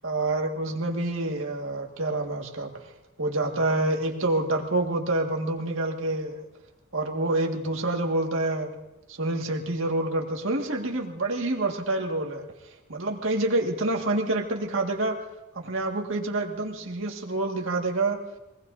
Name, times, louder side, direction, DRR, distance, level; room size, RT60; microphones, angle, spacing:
voice 1, 0.0-2.7 3.2-6.4 6.9-8.7 9.2-12.5 12.9-15.2 15.5-18.2, right 2 dB, 70° right, 1 dB, 1.9 m, -27 dB
23.5 x 19.0 x 2.7 m, 1.0 s
head